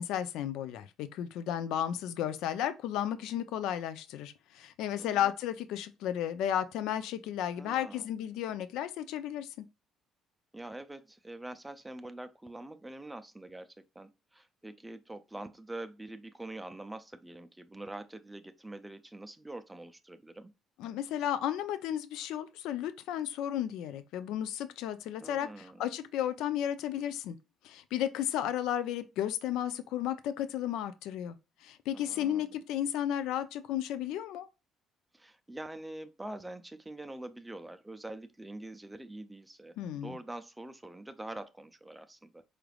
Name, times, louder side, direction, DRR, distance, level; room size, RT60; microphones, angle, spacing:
voice 1, 0.0-9.6 20.8-27.4 27.6-31.4 31.6-34.5 39.8-40.1, left 10 dB, 85° left, 0.4 m, -33 dB
voice 2, 5.0-5.3 7.6-8.1 10.5-20.5 25.2-25.8 31.9-32.6 35.1-42.4, right 1 dB, 5° right, 0.4 m, -45 dB
4.9 x 3.3 x 2.3 m
cardioid pair, 155°, 0 cm